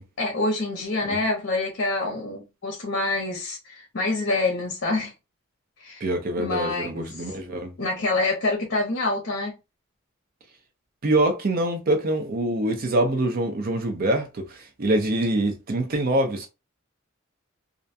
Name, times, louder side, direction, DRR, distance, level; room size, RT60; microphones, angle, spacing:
voice 1, 0.2-5.1 5.8-6.1 6.4-7.3 7.8-9.5, left 2 dB, 60° left, 0.7 m, -26 dB
voice 2, 6.0-7.7 11.0-16.5, right 1 dB, 45° right, 0.5 m, -24 dB
2.4 x 2.2 x 2.5 m
head